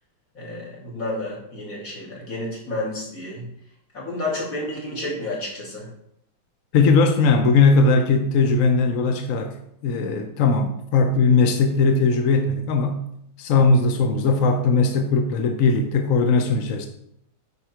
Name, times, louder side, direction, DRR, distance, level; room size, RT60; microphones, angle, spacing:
voice 1, 0.3-3.5 3.9-5.9, left 2 dB, 40° left, -4 dB, 3.3 m, -30 dB
voice 2, 6.7-9.5 9.8-13.0 13.4-16.9, left 4 dB, 60° left, 5 dB, 0.9 m, -19 dB
9.4 x 5.9 x 4.5 m, 0.75 s
omnidirectional pair, 2.2 m